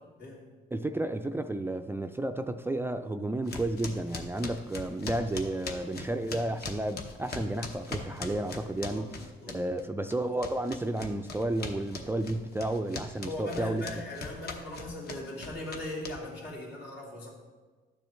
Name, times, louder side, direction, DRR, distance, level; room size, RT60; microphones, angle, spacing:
voice 1, 0.7-9.1 9.5-13.8, right 1 dB, 10° right, 7 dB, 0.3 m, -32 dB
sound 1, 3.5-9.8 10.1-16.5, left 3 dB, 55° left, 1.1 m, -40 dB
voice 2, 13.2-17.3, left 1 dB, 75° left, -5 dB, 2.9 m, -39 dB
12.0 x 7.0 x 3.1 m, 1.3 s
cardioid pair, 90°, 20 cm